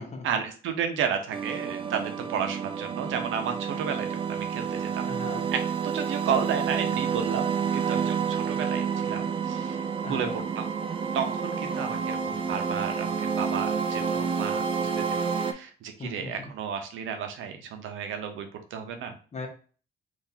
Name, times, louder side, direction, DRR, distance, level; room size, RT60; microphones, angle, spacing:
voice 1, 0.2-5.1 5.5-10.4 11.1-19.2, right 7 dB, 80° right, 6 dB, 0.7 m, -32 dB
sound 1, 1.3-15.5, right 6 dB, 25° right, 0.4 m, -29 dB
voice 2, 5.1-5.5 10.0-10.4 16.0-16.5 19.3-19.5, left 3 dB, 35° left, 2 dB, 1.0 m, -38 dB
3.8 x 2.6 x 2.8 m, 0.39 s
cardioid pair, 90°, 20 cm